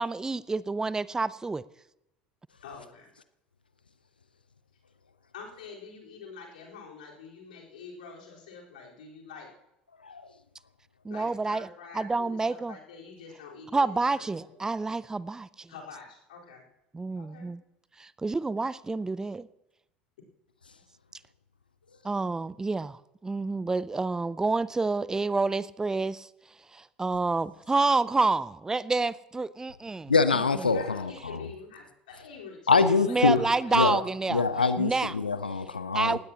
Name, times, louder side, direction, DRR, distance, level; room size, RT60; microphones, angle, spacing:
voice 1, 0.0-1.6 11.0-11.7 11.9-12.8 13.7-15.7 16.9-17.6 18.0-19.5 22.0-26.3 26.7-30.7 33.1-34.4 34.8-35.1 35.9-36.2, right 3 dB, 10° right, 0.5 m, -28 dB
voice 2, 2.6-3.1 5.3-9.5 11.1-14.6 15.7-16.7 17.2-17.5 30.7-34.2, left 5 dB, 65° left, 4.2 m, -46 dB
voice 3, 30.1-31.4 32.7-33.4 33.7-34.0 34.3-36.2, left 4 dB, 80° left, 0.7 m, -24 dB
19.5 x 17.0 x 2.9 m
figure-of-eight pair, 70°, 5 cm